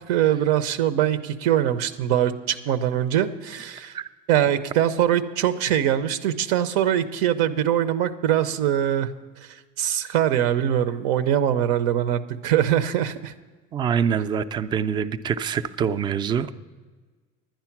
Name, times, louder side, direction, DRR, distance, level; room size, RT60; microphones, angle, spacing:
voice 1, 0.1-3.9 4.3-9.1 9.8-13.3, right 10 dB, 90° right, 12 dB, 0.7 m, -22 dB
voice 2, 13.7-16.5, right 7 dB, 20° right, 12 dB, 0.3 m, -25 dB
10.5 x 10.5 x 5.9 m, 1.4 s
cardioid pair, 165°, 20 cm